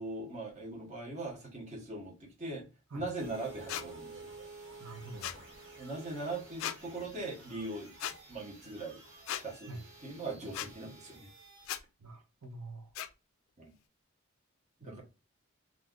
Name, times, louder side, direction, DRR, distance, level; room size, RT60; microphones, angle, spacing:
voice 1, 0.0-2.7 2.9-4.3 5.8-7.9 8.3-9.0 9.4-9.7 10.0-11.2 13.6-13.7 14.8-15.0, right 2 dB, 30° right, 0.9 m, -40 dB
sound 1, 3.2-11.7, right 3 dB, 55° right, 1.5 m, -52 dB
sound 2, 3.7-3.8 5.2-5.4 6.6-6.8 8.0-8.1 9.3-9.4 10.5-10.7 11.6-11.8 12.9-13.1, left 11 dB, 70° left, 0.3 m, -37 dB
voice 2, 4.8-5.4 9.7-9.8 12.0-13.0 14.8-15.0, right 2 dB, 75° right, 0.6 m, -46 dB
2.5 x 2.4 x 3.6 m
head